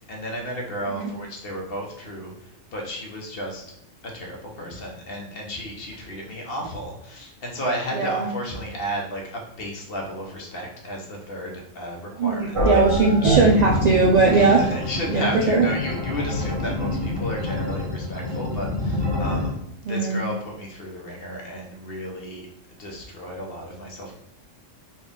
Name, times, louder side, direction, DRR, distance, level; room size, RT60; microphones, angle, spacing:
voice 1, 0.1-3.6 4.0-12.8 14.3-22.5 22.8-24.1, equal, 50° left, 0 dB, 1.0 m, -33 dB
voice 2, 7.9-8.3 12.2-14.6 15.1-15.7 19.9-20.2, right 3 dB, 85° right, -1 dB, 0.3 m, -19 dB
sound 1, 12.5-19.5, left 1 dB, 30° right, 0.8 m, -26 dB
4.3 x 2.4 x 3.6 m, 0.78 s
omnidirectional pair, 1.3 m